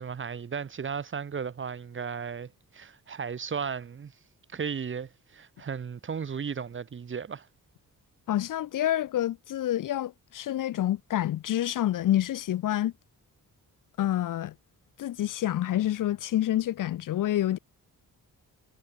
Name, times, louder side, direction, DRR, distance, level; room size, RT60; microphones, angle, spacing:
voice 1, 0.0-4.1 4.5-7.5, right 6 dB, 35° right, 0.6 m, -35 dB
voice 2, 8.3-12.9 14.0-14.5 15.0-17.6, left 13 dB, 60° left, 0.5 m, -28 dB
cardioid pair, 95°, 36 cm